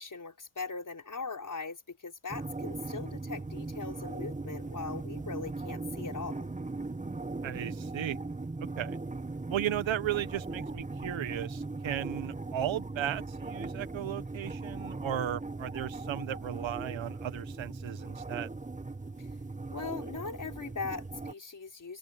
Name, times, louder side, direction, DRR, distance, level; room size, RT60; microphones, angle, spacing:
voice 1, 0.0-6.5 19.2-19.3 19.7-22.0, left 4 dB, 40° left, 5.2 m, -40 dB
sound 1, 2.3-21.3, right 3 dB, 15° right, 1.5 m, -39 dB
voice 2, 7.4-8.2 8.8-9.0 9.5-18.5, right 11 dB, 70° right, 1.7 m, -35 dB
supercardioid pair, 50°, 48 cm